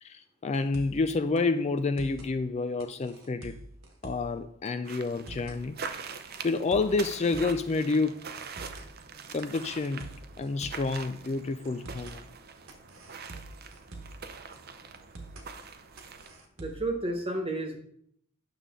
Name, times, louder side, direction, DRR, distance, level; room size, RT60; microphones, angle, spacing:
voice 1, 0.0-3.5 4.0-5.8 6.4-8.2 9.3-10.1 10.4-12.2, left 3 dB, 30° left, 0.3 m, -29 dB
sound 1, 0.5-1.1 1.4-1.5 1.8-2.3 2.8-4.4 4.6-4.7 5.1-5.6 6.1-7.7 7.9-8.0 8.4-8.9 9.4-10.9 11.2-11.3 11.6-12.2 12.7-14.2 14.5-14.6 14.9-15.5 16.0-16.9, right 2 dB, 70° right, 1.4 m, -45 dB
sound 2, 4.8-16.4, right 5 dB, 45° right, 0.6 m, -44 dB
voice 2, 16.6-17.7, right 2 dB, 25° right, 1.3 m, -31 dB
9.2 x 6.7 x 3.7 m
head